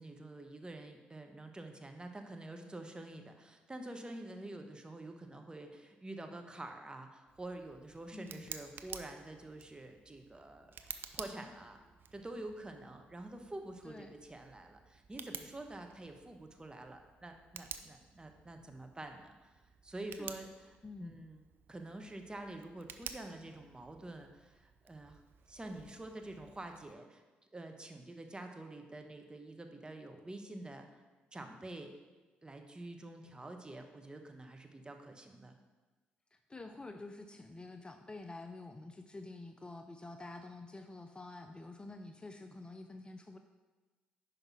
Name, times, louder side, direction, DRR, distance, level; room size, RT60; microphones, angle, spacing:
voice 1, 0.0-11.8 12.1-25.2 25.5-27.2 27.5-31.0 31.3-31.9 32.4-35.5, right 2 dB, 20° right, 4 dB, 1.0 m, -47 dB
Tick, 7.3-26.9, right 6 dB, 50° right, 0.5 m, -52 dB
voice 2, 8.1-8.5 13.8-14.1 20.2-20.4 20.8-21.3 36.3-43.4, left 2 dB, 20° left, 6 dB, 0.5 m, -48 dB
5.7 x 5.2 x 4.7 m, 1.2 s
hypercardioid pair, 50°, 5 cm